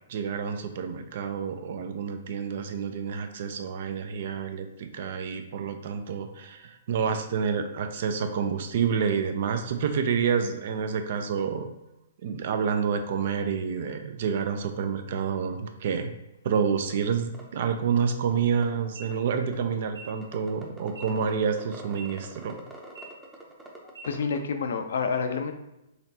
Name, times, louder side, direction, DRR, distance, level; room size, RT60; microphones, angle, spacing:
voice 1, 0.1-11.7 12.2-16.1 16.4-22.6, right 6 dB, 55° right, 7 dB, 0.4 m, -28 dB
sound 1, 16.9-17.0 17.3-17.4 17.8-17.9 18.1-18.7 19.1-19.7 20.2-24.4, right 2 dB, 10° right, 0.7 m, -45 dB
sound 2, 18.8-19.0 19.8-20.0 20.8-21.0 21.8-22.0 22.8-23.0 23.8-24.0, right 5 dB, 85° right, 1.3 m, -45 dB
voice 2, 24.0-25.5, left 5 dB, 65° left, 7 dB, 0.4 m, -28 dB
4.1 x 3.1 x 2.7 m, 0.90 s
figure-of-eight pair, 115°, 0 cm